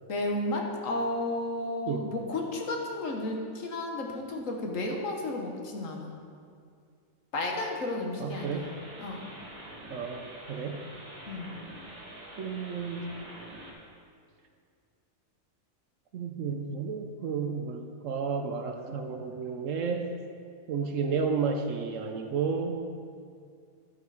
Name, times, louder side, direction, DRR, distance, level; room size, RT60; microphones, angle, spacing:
voice 1, 0.1-6.1 7.3-8.7 9.0-9.3 11.3-11.5, left 2 dB, 60° left, 1 dB, 1.4 m, -32 dB
voice 2, 8.2-8.7 9.9-10.8 12.4-13.1 16.1-20.1 20.7-22.8, right 5 dB, 65° right, 5 dB, 0.9 m, -32 dB
sound 1, 8.3-13.7, right 1 dB, 80° right, 2.7 m, -46 dB
11.5 x 6.7 x 4.8 m, 2.2 s
omnidirectional pair, 1.6 m